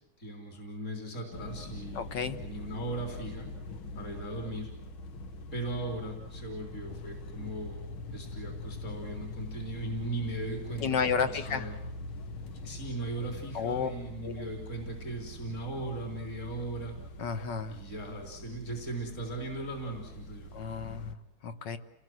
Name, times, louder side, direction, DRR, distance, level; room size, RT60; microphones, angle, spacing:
voice 1, 0.2-2.0 2.4-3.5 3.9-4.7 5.5-7.8 8.1-11.7 12.6-16.9 17.7-20.5, right 2 dB, 35° left, 2 dB, 4.0 m, -38 dB
sound 1, 1.3-21.2, left 2 dB, 75° left, 2.3 m, -43 dB
voice 2, 2.0-2.4 10.8-11.7 13.5-13.9 14.2-14.5 17.2-17.8 20.5-21.8, left 6 dB, 60° left, 10 dB, 1.8 m, -32 dB
29.5 x 19.0 x 7.8 m, 0.96 s
omnidirectional pair, 2.3 m